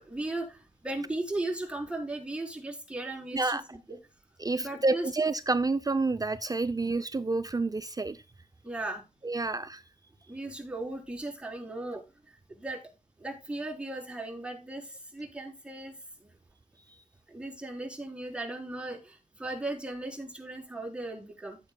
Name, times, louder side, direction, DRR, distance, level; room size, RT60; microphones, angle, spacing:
voice 1, 0.0-4.0 4.6-5.1 8.6-9.0 10.3-12.8 13.2-16.3 17.3-21.6, right 2 dB, 5° right, 4.0 m, -37 dB
voice 2, 4.4-8.2 9.2-9.8, right 3 dB, 25° right, 0.5 m, -29 dB
14.5 x 7.5 x 2.2 m
wide cardioid pair, 120°, 14 cm